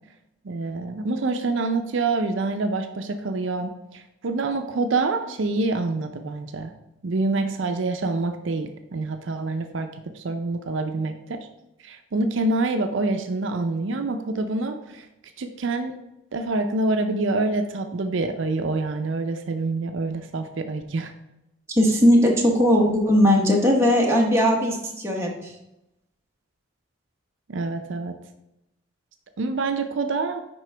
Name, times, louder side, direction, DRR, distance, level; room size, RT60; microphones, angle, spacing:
voice 1, 0.4-6.7 7.0-9.9 10.1-11.4 11.8-15.1 15.4-15.9 16.3-21.1 27.5-28.1 29.4-30.4, right 3 dB, 70° right, 7 dB, 0.5 m, -26 dB
voice 2, 21.7-25.5, equal, 15° right, -1 dB, 1.0 m, -19 dB
9.8 x 3.7 x 3.3 m, 0.88 s
head